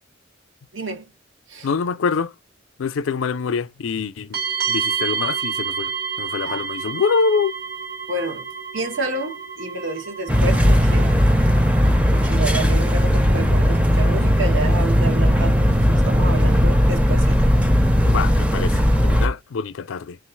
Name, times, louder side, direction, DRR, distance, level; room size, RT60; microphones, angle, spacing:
voice 1, 0.7-1.1 1.5-1.7 6.4-6.7 8.1-8.5 8.7-11.2 12.1-17.5, right 2 dB, 70° right, 1.2 m, -29 dB
voice 2, 1.6-2.3 2.8-4.4 4.7-7.5 18.1-20.2, left 5 dB, 75° left, 0.4 m, -25 dB
sound 1, 4.3-18.7, right 6 dB, 55° right, 1.6 m, -32 dB
sound 2, 10.3-19.3, equal, 5° right, 0.5 m, -17 dB
3.7 x 2.4 x 4.5 m
head